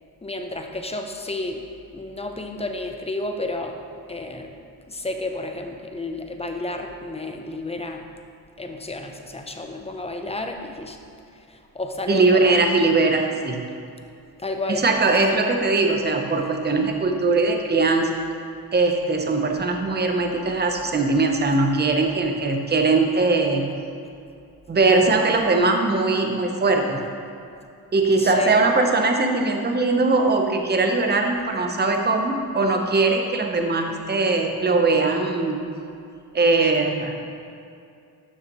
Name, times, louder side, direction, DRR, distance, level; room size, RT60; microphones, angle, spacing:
voice 1, 0.2-1.6 1.9-3.8 4.1-8.1 8.6-11.0 11.3-12.6 14.4-14.8 28.2-28.6, left 2 dB, 15° left, 4 dB, 0.7 m, -31 dB
voice 2, 12.1-13.6 14.7-18.1 18.7-23.7 24.7-27.0 27.9-35.6 36.3-37.2, right 3 dB, 25° right, 3 dB, 0.9 m, -20 dB
12.0 x 6.5 x 3.1 m, 2.5 s
cardioid pair, 115°, 37 cm